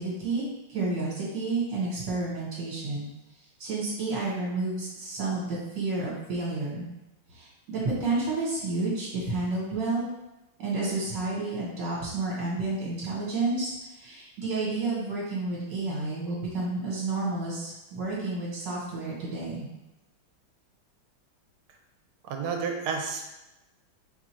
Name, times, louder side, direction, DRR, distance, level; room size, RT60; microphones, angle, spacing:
voice 1, 0.0-3.1 3.6-6.9 7.3-10.1 10.6-19.7, right 3 dB, 60° right, -6 dB, 1.8 m, -30 dB
voice 2, 22.3-23.2, right 5 dB, 90° right, 3 dB, 1.5 m, -30 dB
4.4 x 2.4 x 4.4 m, 0.98 s
omnidirectional pair, 2.3 m